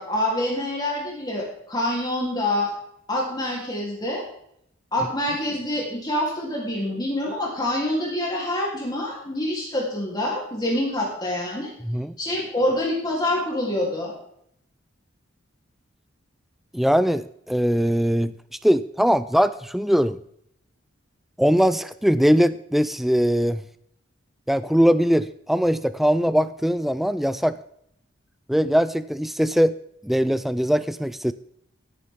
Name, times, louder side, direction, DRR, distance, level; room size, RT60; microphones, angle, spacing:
voice 1, 0.0-2.7 3.1-4.2 4.9-11.7 12.2-14.1, left 1 dB, 20° left, -3 dB, 3.3 m, -26 dB
voice 2, 16.7-18.3 18.6-20.2 21.4-23.6 24.5-27.6 28.5-29.8 30.0-31.3, equal, ahead, 14 dB, 0.3 m, -21 dB
16.0 x 9.6 x 3.7 m, 0.72 s
head